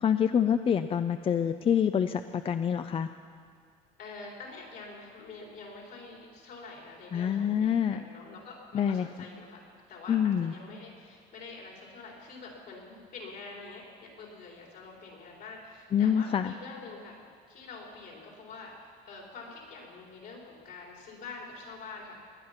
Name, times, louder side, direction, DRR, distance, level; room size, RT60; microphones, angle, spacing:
voice 1, 0.0-3.1 7.1-8.0 8.7-9.1 10.1-10.5 15.9-16.5, left 8 dB, 35° left, 10 dB, 0.4 m, -26 dB
voice 2, 4.0-9.6 9.9-22.2, left 3 dB, 65° left, -1 dB, 4.0 m, -46 dB
20.0 x 9.4 x 5.8 m, 2.1 s
cardioid pair, 110°, 17 cm